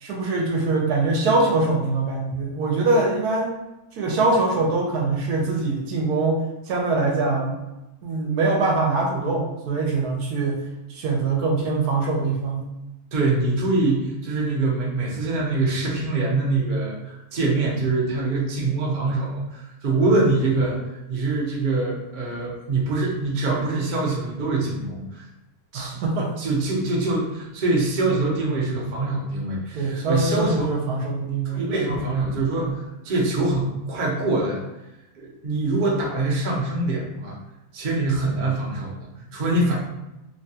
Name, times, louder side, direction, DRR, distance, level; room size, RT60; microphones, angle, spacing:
voice 1, 0.0-3.5 3.9-6.4 6.7-7.5 8.0-10.6 10.9-12.7 25.7-26.3 29.7-31.7 31.9-32.0, right 3 dB, 75° right, -1 dB, 1.1 m, -23 dB
voice 2, 13.1-20.8 21.1-25.3 25.7-26.0 26.4-30.8 31.4-34.6 35.2-37.4 37.7-39.8, right 2 dB, 45° right, -3 dB, 0.6 m, -24 dB
3.1 x 2.2 x 2.7 m, 0.96 s
omnidirectional pair, 1.6 m